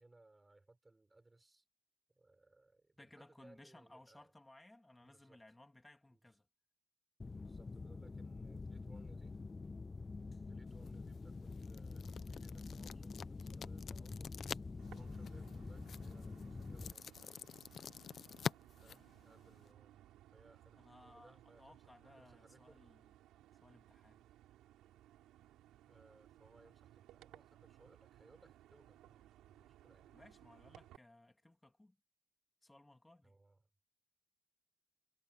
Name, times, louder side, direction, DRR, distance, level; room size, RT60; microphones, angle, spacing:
voice 1, 0.0-1.7 2.1-4.3 5.0-5.4 6.1-6.2 7.3-9.4 10.4-14.3 14.8-17.5 18.8-20.0 20.3-22.9 25.9-30.2 33.2-33.6, right 2 dB, 15° right, 5.4 m, -66 dB
voice 2, 3.0-6.5 20.8-23.1 23.6-24.2 30.1-32.0 32.6-33.4, left 1 dB, 10° left, 3.2 m, -61 dB
sound 1, 7.2-16.9, left 3 dB, 25° left, 0.4 m, -47 dB
sound 2, 10.7-19.7, left 7 dB, 55° left, 0.8 m, -48 dB
sound 3, 14.8-31.0, right 13 dB, 90° right, 4.2 m, -62 dB
cardioid pair, 90°, 0 cm